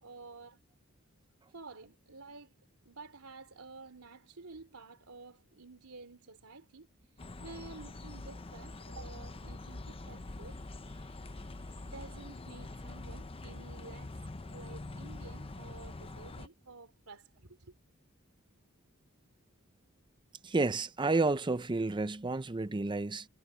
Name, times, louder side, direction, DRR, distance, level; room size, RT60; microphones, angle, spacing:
voice 1, 0.0-0.6 1.5-2.5 2.8-6.9 7.4-10.6 11.8-14.2 14.5-17.7, right 3 dB, 85° right, 3.2 m, -51 dB
sound 1, 7.2-16.5, left 2 dB, 25° left, 0.7 m, -45 dB
voice 2, 20.4-23.3, right 3 dB, 20° right, 0.6 m, -30 dB
head